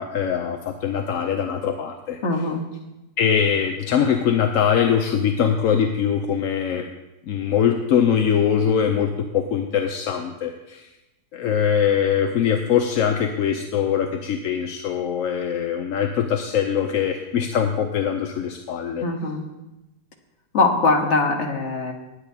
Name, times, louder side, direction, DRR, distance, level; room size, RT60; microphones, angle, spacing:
voice 1, 0.0-2.2 3.2-6.8 7.2-10.9 11.3-19.1, left 8 dB, 65° left, 4 dB, 0.9 m, -22 dB
voice 2, 2.2-2.6 19.0-19.4 20.5-21.9, left 3 dB, 45° left, 3 dB, 1.4 m, -21 dB
19.5 x 8.4 x 2.8 m, 0.99 s
omnidirectional pair, 1.8 m